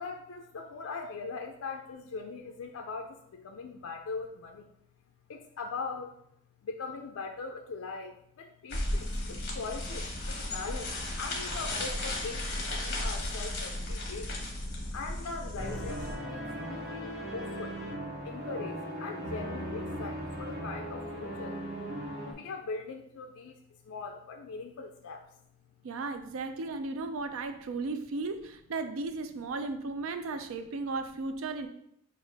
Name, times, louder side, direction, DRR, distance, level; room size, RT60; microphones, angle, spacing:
voice 1, 0.0-4.7 5.3-6.1 6.6-10.9 11.2-14.3 14.9-17.8 18.2-21.7 22.2-23.6 23.8-25.3, left 4 dB, 80° left, 3 dB, 0.4 m, -41 dB
sound 1, 8.7-16.1, left 1 dB, 50° left, 1.2 m, -35 dB
sound 2, 15.6-22.3, equal, 50° right, 1.1 m, -38 dB
voice 2, 25.8-31.7, right 3 dB, 75° right, 8 dB, 0.4 m, -35 dB
6.4 x 2.4 x 3.3 m, 0.74 s
head